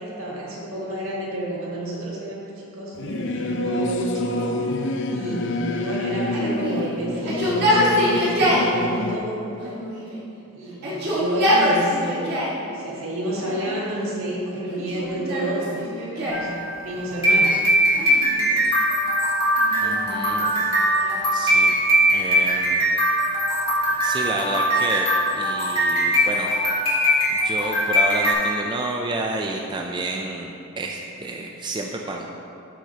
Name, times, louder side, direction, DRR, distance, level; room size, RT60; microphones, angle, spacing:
voice 1, 0.0-9.9 10.5-12.4 12.7-17.6, right 1 dB, 70° right, -5 dB, 1.9 m, -30 dB
Singing / Musical instrument, 2.9-9.2, left 2 dB, 55° left, 0.6 m, -27 dB
Yell, 6.3-8.7 9.6-10.3 10.7-12.6 13.3-14.0 14.7-16.5 17.9-18.7 19.6-21.3, equal, 50° right, 1.9 m, -25 dB
sound 1, 16.3-28.3, right 1 dB, 25° left, 2.0 m, -21 dB
voice 2, 19.8-20.5 21.3-21.7 22.1-22.8 24.0-26.5 27.3-32.3, right 2 dB, 20° right, 1 dB, 0.4 m, -30 dB
13.5 x 6.1 x 2.9 m, 2.7 s
head